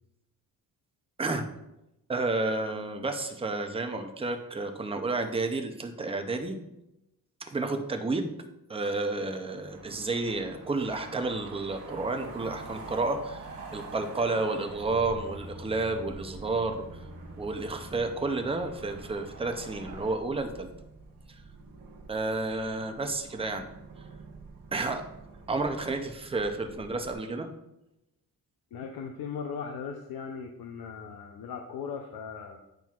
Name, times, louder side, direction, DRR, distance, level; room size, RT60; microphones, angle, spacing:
voice 1, 2.1-6.6 7.4-8.3 8.7-16.8 17.4-20.7 21.3-21.4 22.1-23.7 24.7-25.0 25.5-27.5, right 3 dB, 15° right, 5 dB, 0.5 m, -31 dB
sound 1, 9.7-20.1, right 4 dB, 40° right, 1.4 m, -46 dB
sound 2, 14.7-27.1, right 1 dB, 70° right, 1.3 m, -47 dB
voice 2, 28.7-32.6, left 6 dB, 85° left, 3 dB, 0.7 m, -38 dB
9.0 x 5.8 x 2.4 m, 0.90 s
wide cardioid pair, 175°, 36 cm